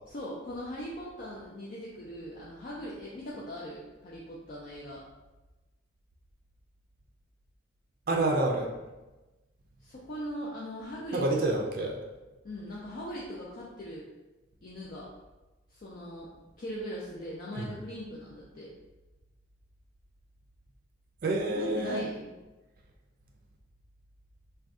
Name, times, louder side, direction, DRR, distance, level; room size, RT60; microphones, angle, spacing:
voice 1, 0.1-5.0 9.8-11.5 12.4-14.1 14.6-15.1 15.7-16.3 16.6-18.7 21.5-22.3, equal, 45° left, -5 dB, 0.4 m, -40 dB
voice 2, 8.1-8.7 11.1-12.0 17.6-17.7 21.2-22.0, right 2 dB, 50° right, 0 dB, 0.4 m, -28 dB
2.6 x 2.2 x 3.4 m, 1.1 s
head